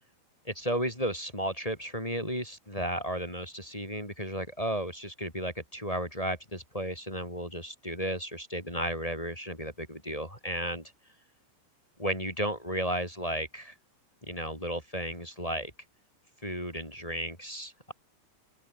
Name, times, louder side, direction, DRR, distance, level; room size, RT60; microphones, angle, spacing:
voice 1, 0.4-10.9 12.0-13.7 14.2-15.7 16.4-17.9, equal, 5° left, 4.1 m, -34 dB
open air
omnidirectional pair, 5.8 m